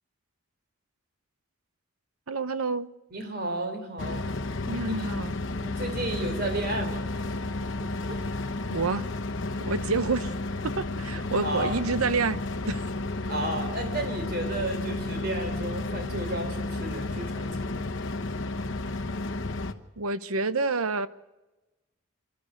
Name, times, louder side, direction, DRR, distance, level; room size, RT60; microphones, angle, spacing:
voice 1, 2.3-2.9 4.7-5.3 8.7-9.1 9.6-10.3 10.6-12.4 12.7-12.8 20.0-21.1, right 4 dB, 85° right, 0.9 m, -28 dB
voice 2, 3.1-4.2 4.8-4.9 5.6-7.1 7.8-8.2 11.4-11.8 13.3-17.9, right 1 dB, 45° right, 3.7 m, -33 dB
sound 1, 4.0-19.7, left 2 dB, 55° left, 1.1 m, -32 dB
27.0 x 13.0 x 8.0 m
head